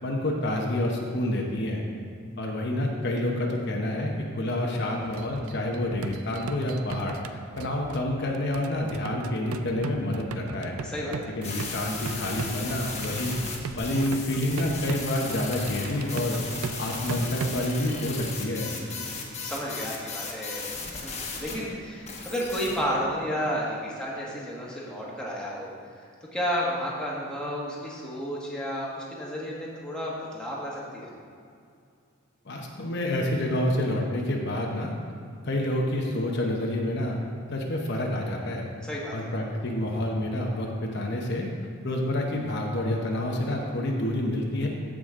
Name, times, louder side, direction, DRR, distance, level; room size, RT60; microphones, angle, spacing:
voice 1, 0.0-1.8 2.4-7.2 7.6-10.8 11.4-13.4 13.8-16.4 16.8-18.7 32.4-34.9 35.4-37.2 37.5-38.7 39.1-41.5 41.8-44.7, left 1 dB, 55° left, 0 dB, 0.9 m, -28 dB
sound 1, 5.0-17.7, right 5 dB, 90° right, 0.4 m, -38 dB
voice 2, 10.8-11.3 18.8-20.7 21.0-25.7 26.3-31.1 38.8-39.3, equal, 5° left, -5 dB, 1.5 m, -32 dB
sound 2, 11.4-21.6 22.1-22.8, left 4 dB, 30° left, 1.2 m, -36 dB
15.0 x 5.1 x 3.7 m, 2.4 s
head